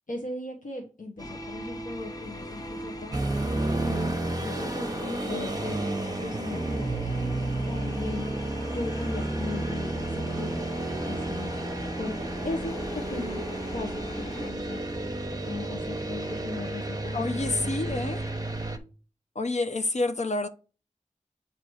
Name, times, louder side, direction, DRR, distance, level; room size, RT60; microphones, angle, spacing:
voice 1, 0.1-3.1 3.8-5.8 6.2-7.1 7.7-8.3 8.7-10.7 11.0-11.7 12.0-12.2 12.4-12.7 13.1-13.4 13.7-15.2 15.4-18.1, left 2 dB, 90° left, 1.1 m, -38 dB
sound 1, 1.2-14.5, left 1 dB, 25° left, 0.9 m, -39 dB
sound 2, 3.1-18.8, right 2 dB, 30° right, 0.8 m, -31 dB
voice 2, 17.1-18.3 19.4-20.5, left 2 dB, 60° left, 0.5 m, -28 dB
7.7 x 2.9 x 4.7 m
wide cardioid pair, 50°, 13 cm